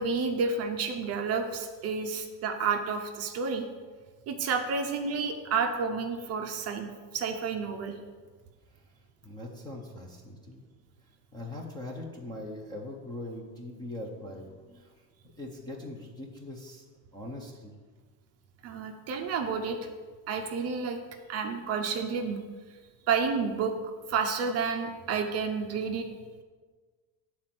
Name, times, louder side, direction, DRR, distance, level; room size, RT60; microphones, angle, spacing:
voice 1, 0.0-3.6 4.3-6.9 7.1-8.0 18.6-19.8 20.3-21.0 21.3-22.4 23.1-23.7 24.1-26.1, right 5 dB, 35° right, 4 dB, 0.6 m, -30 dB
voice 2, 8.7-10.6 11.3-15.1 15.4-16.8 17.1-17.7, left 1 dB, 10° left, -2 dB, 0.5 m, -42 dB
9.2 x 4.3 x 7.4 m, 1.5 s
cardioid pair, 175°, 47 cm